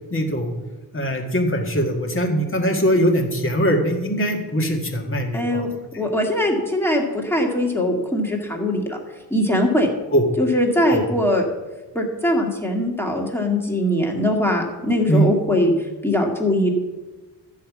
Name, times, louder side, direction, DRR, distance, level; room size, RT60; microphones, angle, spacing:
voice 1, 0.1-0.5 0.9-5.7 10.1-10.2 10.9-11.0 15.1-15.3, equal, 30° left, 2 dB, 1.9 m, -21 dB
voice 2, 5.3-5.7 6.0-9.0 9.3-9.9 10.4-11.4 11.9-15.7 16.0-16.7, left 1 dB, 5° left, 0 dB, 2.0 m, -21 dB
13.0 x 5.7 x 8.3 m, 1.2 s
wide cardioid pair, 140°, 40 cm